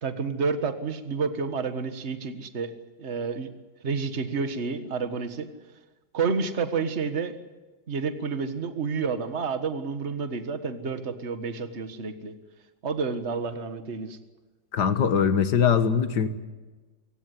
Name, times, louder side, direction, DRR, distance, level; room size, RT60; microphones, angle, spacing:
voice 1, 0.0-2.7 3.0-3.5 3.8-5.5 6.1-7.4 7.9-12.3 12.8-14.2, right 5 dB, 45° right, 10 dB, 1.8 m, -29 dB
voice 2, 14.7-16.3, left 7 dB, 80° left, 11 dB, 2.0 m, -22 dB
26.5 x 16.0 x 9.8 m, 1.3 s
omnidirectional pair, 1.8 m